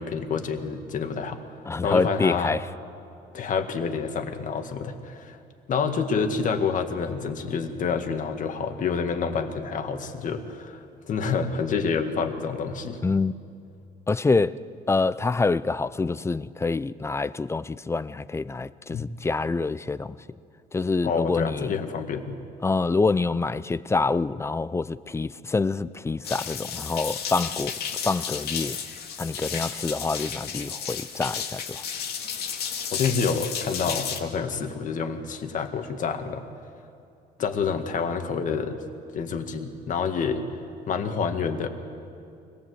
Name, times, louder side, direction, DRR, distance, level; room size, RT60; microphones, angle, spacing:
voice 1, 0.0-1.4 1.8-2.6 3.3-5.4 5.7-13.0 18.9-19.1 21.0-22.4 32.9-36.4 37.4-38.8 39.1-40.4 40.9-41.7, left 5 dB, 50° left, 1.9 m, -28 dB
voice 2, 1.7-2.7 13.0-13.3 14.1-14.6 14.9-20.2 20.7-21.7 22.6-27.7 28.0-28.8 29.2-31.8, left 3 dB, 15° left, 0.5 m, -26 dB
sound 1, 26.2-34.2, left 7 dB, 75° left, 2.2 m, -33 dB
25.0 x 18.5 x 8.0 m
cardioid pair, 110°, 17 cm